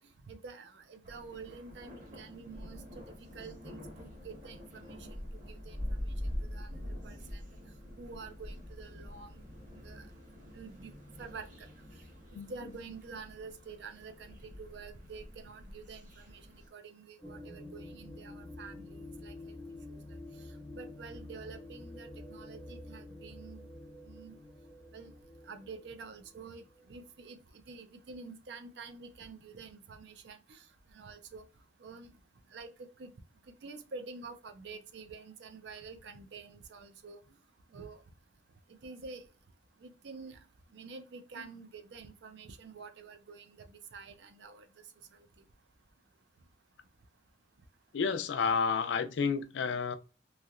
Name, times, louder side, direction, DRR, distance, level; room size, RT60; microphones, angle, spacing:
voice 1, 0.3-3.0 3.3-5.0 5.5-5.8 6.5-7.4 8.0-9.4 9.7-10.0 10.6-10.9 11.2-11.5 12.5-16.4 16.7-19.6 19.9-20.0 20.7-23.6 24.1-24.4 24.9-25.1 25.5-27.4 27.7-30.6 30.9-31.4 31.8-32.1 32.5-32.7 33.0-33.1 33.6-37.2 37.7-38.0 38.8-39.2 39.8-40.4 40.7-44.6, right 4 dB, 65° right, 0.5 m, -48 dB
sound 1, 1.0-16.7, equal, 45° right, 1.3 m, -44 dB
sound 2, 17.2-27.2, left 1 dB, 10° left, 0.5 m, -49 dB
voice 2, 47.9-50.0, left 5 dB, 80° left, 0.4 m, -30 dB
3.2 x 2.7 x 2.4 m
head